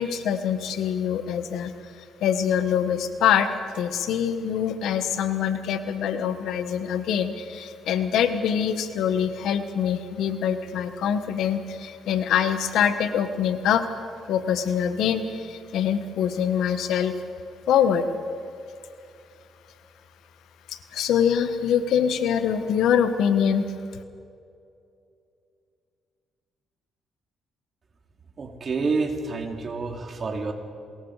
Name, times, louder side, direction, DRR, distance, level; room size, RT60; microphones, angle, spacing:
voice 1, 0.0-1.7 2.2-3.5 3.7-13.8 14.3-17.1 17.7-18.1 20.7-23.7, left 8 dB, 80° left, 10 dB, 1.4 m, -24 dB
voice 2, 28.4-30.5, right 4 dB, 45° right, 3 dB, 3.0 m, -28 dB
28.0 x 21.5 x 5.0 m, 2.5 s
cardioid pair, 90°, 0 cm